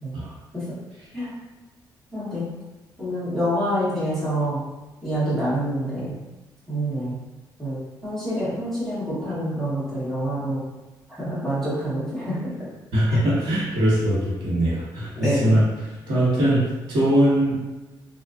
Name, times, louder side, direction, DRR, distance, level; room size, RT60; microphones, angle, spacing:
voice 1, 2.1-2.5 3.0-4.6 5.0-6.2 6.7-7.2 7.6-10.6 11.2-12.5 13.1-13.2 15.1-15.6, equal, 5° left, -11 dB, 1.2 m, -26 dB
voice 2, 12.9-15.6 16.1-17.6, right 1 dB, 90° right, -6 dB, 1.1 m, -21 dB
2.8 x 2.4 x 2.5 m, 1.1 s
wide cardioid pair, 155°, 8 cm